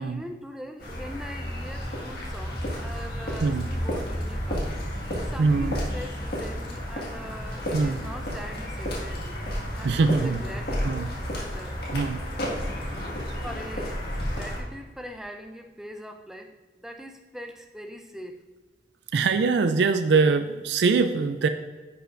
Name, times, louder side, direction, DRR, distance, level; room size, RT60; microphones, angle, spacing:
voice 1, 0.0-11.8 13.4-18.4, equal, ahead, 4 dB, 0.4 m, -42 dB
sound 1, 0.8-14.6, equal, 60° left, 1.8 m, -31 dB
voice 2, 5.4-5.8 7.7-8.0 9.8-10.4 10.8-11.1 11.9-12.2 19.1-21.5, right 4 dB, 70° right, 9 dB, 0.4 m, -23 dB
10.0 x 5.5 x 2.5 m, 1.3 s
head